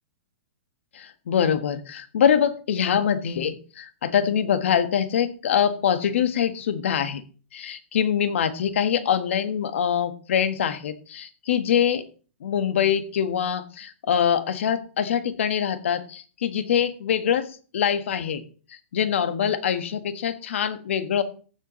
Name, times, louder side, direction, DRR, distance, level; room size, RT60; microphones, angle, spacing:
voice 1, 0.9-7.2 7.5-12.1 12.4-18.4 18.9-21.2, left 8 dB, 75° left, 10 dB, 1.4 m, -24 dB
14.5 x 7.7 x 3.1 m, 0.39 s
hypercardioid pair, 135°, 7 cm